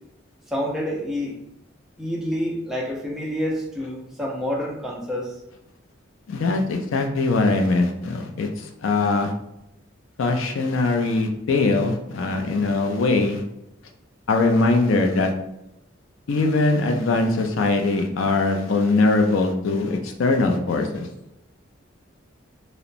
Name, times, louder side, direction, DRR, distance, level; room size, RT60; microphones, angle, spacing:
voice 1, 0.5-1.4 2.0-5.4, equal, ahead, -2 dB, 0.4 m, -28 dB
voice 2, 6.3-9.3 10.2-13.4 14.3-15.3 16.3-21.1, left 3 dB, 80° left, 4 dB, 0.4 m, -21 dB
2.9 x 2.0 x 2.5 m, 0.84 s
head